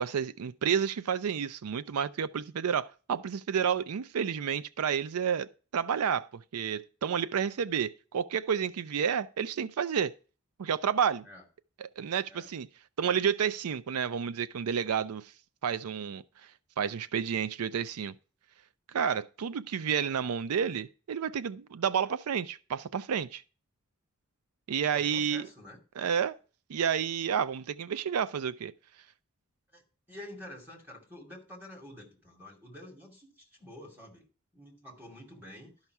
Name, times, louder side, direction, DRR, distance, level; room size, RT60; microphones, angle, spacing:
voice 1, 0.0-10.1 10.6-11.3 11.8-12.7 13.0-15.3 15.6-16.2 16.8-18.1 18.9-23.4 24.7-25.5 26.0-26.4 26.7-28.7, right 7 dB, 90° right, 0.4 m, -30 dB
voice 2, 24.9-25.8 29.7-29.8 30.1-34.3 34.5-35.7, left 1 dB, 10° right, 2.5 m, -48 dB
12.0 x 5.7 x 4.7 m
head